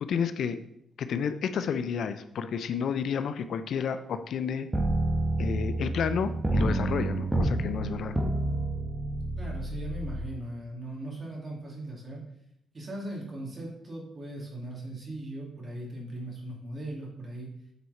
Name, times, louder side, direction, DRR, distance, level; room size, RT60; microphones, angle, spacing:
voice 1, 0.0-0.6 1.0-4.7 5.4-8.1, left 7 dB, 65° left, 11 dB, 0.5 m, -31 dB
sound 1, 4.7-10.2, right 2 dB, 15° right, 1.2 m, -29 dB
voice 2, 9.3-12.2 12.7-17.5, right 1 dB, 30° right, -2 dB, 2.7 m, -39 dB
8.1 x 4.6 x 4.2 m, 0.77 s
cardioid pair, 90°, 0 cm